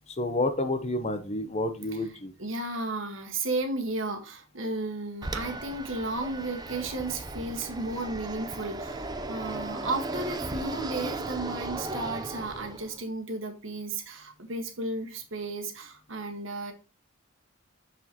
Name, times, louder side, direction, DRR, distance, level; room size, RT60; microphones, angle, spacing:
voice 1, 0.0-2.3, left 2 dB, 30° left, 9 dB, 0.8 m, -29 dB
voice 2, 2.4-16.7, right 2 dB, 70° right, 4 dB, 1.6 m, -34 dB
Fixed-wing aircraft airplane, 5.2-13.0, right 2 dB, 20° right, 0.7 m, -36 dB
6.9 x 6.2 x 2.9 m, 0.31 s
head